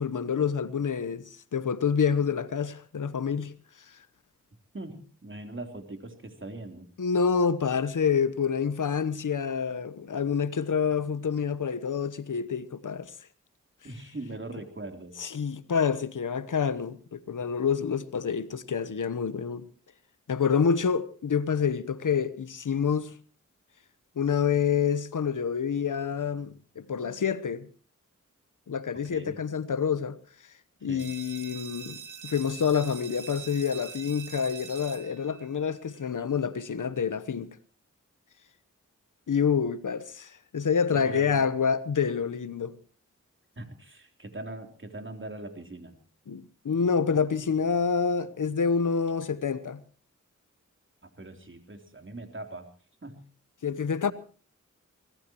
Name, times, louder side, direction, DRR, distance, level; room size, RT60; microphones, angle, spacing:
voice 1, 0.0-3.5 7.0-13.1 15.2-19.7 20.3-23.1 24.2-27.7 28.7-30.2 30.8-37.6 39.3-42.7 46.3-49.8 53.6-54.1, left 6 dB, 80° left, 1.0 m, -27 dB
voice 2, 4.7-6.9 13.8-15.1 29.1-29.4 30.8-31.1 40.9-41.5 43.6-46.0 51.0-52.7 53.0-53.2, right 2 dB, 40° right, 3.5 m, -41 dB
sound 1, 31.0-36.4, right 7 dB, 80° right, 2.2 m, -44 dB
24.5 x 19.0 x 3.0 m
wide cardioid pair, 60°, 31 cm